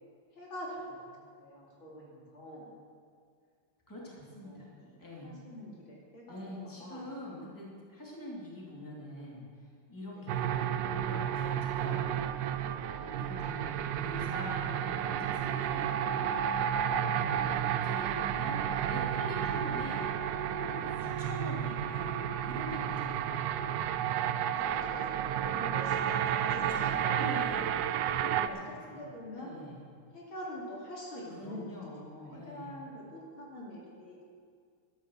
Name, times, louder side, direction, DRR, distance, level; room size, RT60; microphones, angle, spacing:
voice 1, 0.3-2.7 4.4-6.4 6.6-7.1 10.2-10.3 17.3-17.8 18.4-18.7 24.5-27.2 28.5-28.6 28.9-29.5 30.1-34.3, equal, 65° left, -4 dB, 3.5 m, -45 dB
voice 2, 3.9-4.7 5.0-5.3 6.3-12.3 12.9-16.3 17.1-20.1 20.5-23.4 26.3-29.0 29.4-29.8 31.4-32.8, left 1 dB, 10° left, -5 dB, 2.7 m, -44 dB
sound 1, 10.3-28.5, right 9 dB, 75° right, 1.1 m, -32 dB
13.0 x 10.5 x 6.5 m, 2.1 s
omnidirectional pair, 2.4 m